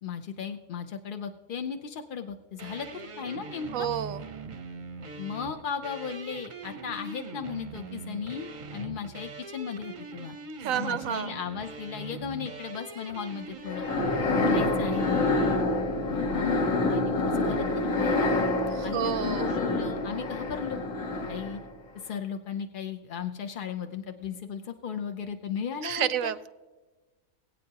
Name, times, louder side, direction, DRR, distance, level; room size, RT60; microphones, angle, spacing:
voice 1, 0.0-2.9 3.2-3.9 5.2-10.4 10.7-13.9 14.3-15.3 16.1-16.6 16.9-18.3 18.8-20.8 21.2-21.6 22.0-26.3, left 7 dB, 55° left, 6 dB, 0.6 m, -36 dB
sound 1, 2.6-15.7, right 4 dB, 40° right, 0.7 m, -42 dB
voice 2, 3.7-4.3 10.6-11.4 18.8-19.5 25.8-26.5, right 10 dB, 75° right, 14 dB, 1.0 m, -30 dB
sound 2, 13.7-21.7, left 2 dB, 70° left, 1.8 m, -27 dB
21.5 x 8.8 x 2.8 m, 1.3 s
omnidirectional pair, 1.5 m